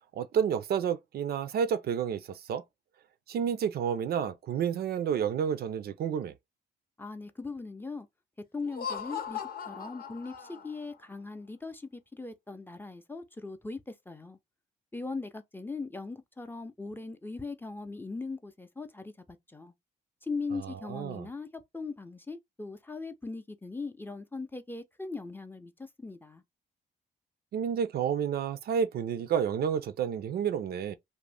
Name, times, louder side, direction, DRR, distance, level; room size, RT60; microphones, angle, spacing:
voice 1, 0.2-2.6 3.3-6.3 20.5-21.3 27.5-31.0, right 8 dB, 60° right, 0.4 m, -30 dB
voice 2, 7.0-8.1 8.5-13.8 14.1-14.4 14.9-19.1 19.5-19.7 20.2-25.7 26.0-26.4, left 3 dB, 10° left, 0.5 m, -39 dB
Laughter, 8.6-10.9, left 7 dB, 55° left, 0.7 m, -39 dB
2.6 x 2.0 x 3.3 m
supercardioid pair, 65°, 19 cm